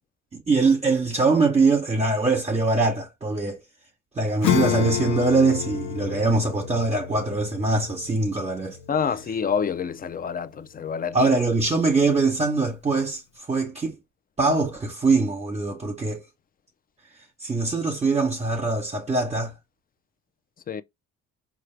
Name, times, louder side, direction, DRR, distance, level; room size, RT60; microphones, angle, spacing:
voice 1, 0.3-3.6 4.2-8.8 11.1-13.2 13.5-14.0 14.4-16.2 17.4-19.5, right 3 dB, 20° right, 1.0 m, -22 dB
Acoustic guitar / Strum, 4.4-10.4, left 9 dB, 70° left, 0.8 m, -29 dB
voice 2, 8.9-11.3 20.7-20.8, left 6 dB, 30° left, 0.4 m, -27 dB
4.5 x 2.5 x 3.2 m
cardioid pair, 90°, 30 cm